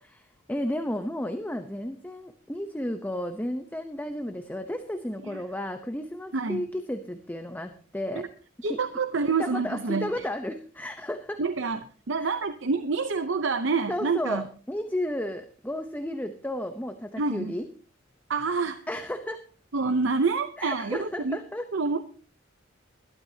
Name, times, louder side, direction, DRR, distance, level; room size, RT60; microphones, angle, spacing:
voice 1, 0.0-8.3 8.7-8.8 9.4-11.4 12.2-12.3 13.9-17.7 18.9-19.4 20.6-21.6, left 1 dB, 10° left, 7 dB, 0.8 m, -33 dB
voice 2, 6.3-6.6 8.2-8.3 8.6-10.3 11.4-11.8 12.1-14.4 17.2-17.5 18.3-18.8 19.7-21.4 21.7-22.0, right 4 dB, 65° right, 10 dB, 0.7 m, -27 dB
21.5 x 12.5 x 2.8 m, 0.39 s
head